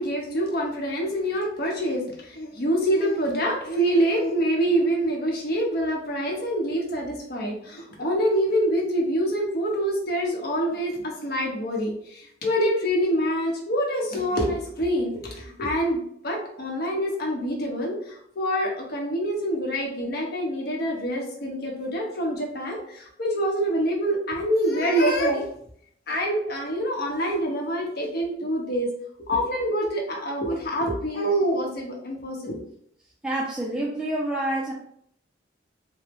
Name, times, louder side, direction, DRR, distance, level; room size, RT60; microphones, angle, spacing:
voice 1, 0.0-25.4 26.1-28.9 29.2-32.6, equal, 60° left, 0 dB, 0.8 m, -26 dB
voice 2, 33.2-34.7, right 1 dB, 5° right, -4 dB, 0.4 m, -27 dB
3.0 x 2.1 x 3.4 m, 0.68 s
head